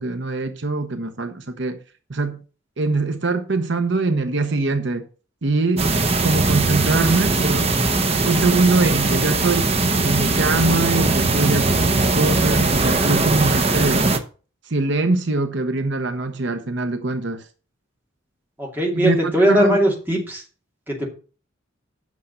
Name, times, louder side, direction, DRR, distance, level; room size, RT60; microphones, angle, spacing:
voice 1, 0.0-1.8 2.1-2.4 2.8-5.1 5.4-5.9 6.2-7.7 8.2-9.8 10.0-14.0 14.6-17.5 18.9-19.8, right 3 dB, 65° right, 0.9 m, -22 dB
sound 1, 5.8-14.2, right 3 dB, 30° right, 0.9 m, -20 dB
voice 2, 18.6-20.4 20.9-21.1, equal, 10° right, 2.5 m, -19 dB
8.3 x 6.5 x 5.7 m
head